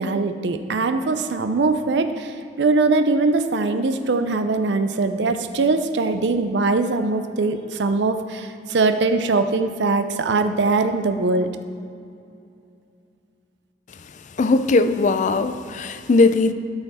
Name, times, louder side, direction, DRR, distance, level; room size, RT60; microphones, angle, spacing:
voice 1, 0.0-2.3 2.6-11.5, right 3 dB, 65° right, 8 dB, 0.5 m, -21 dB
voice 2, 14.4-16.5, left 3 dB, 40° left, 10 dB, 0.4 m, -19 dB
12.5 x 5.7 x 4.2 m, 2.5 s
head